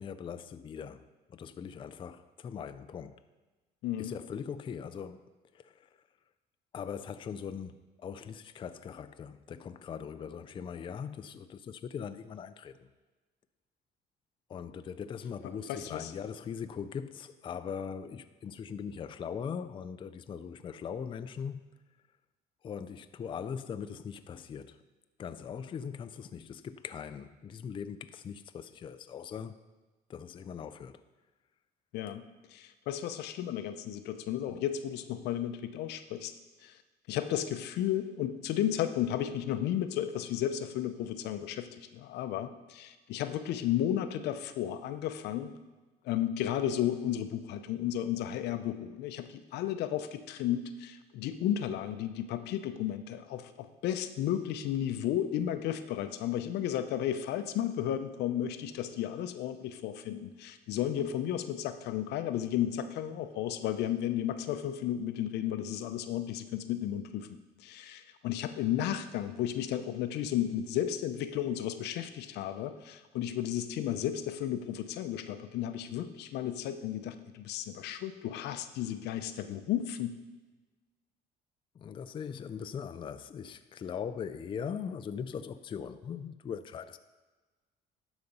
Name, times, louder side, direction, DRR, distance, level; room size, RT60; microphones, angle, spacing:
voice 1, 0.0-3.2 4.0-5.9 6.7-12.9 14.5-21.6 22.6-24.8 25.2-29.6 30.1-31.0 81.8-87.0, left 7 dB, 30° left, 0.4 m, -40 dB
voice 2, 3.8-4.1 15.7-16.1 31.9-32.2 32.5-36.3 36.6-36.8 37.1-45.5 46.0-67.3 67.6-80.2, left 11 dB, 80° left, 0.6 m, -33 dB
12.0 x 4.1 x 5.4 m
cardioid pair, 110°, 17 cm